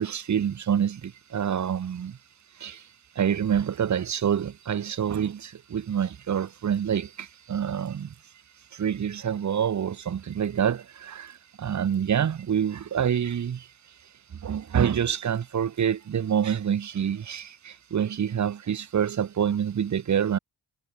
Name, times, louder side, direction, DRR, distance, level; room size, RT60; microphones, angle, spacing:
voice 1, 0.0-2.2 2.6-2.9 3.1-8.1 8.7-13.7 14.3-20.4, right 8 dB, 35° right, 0.8 m, -27 dB
wide cardioid pair, 130°, 50 cm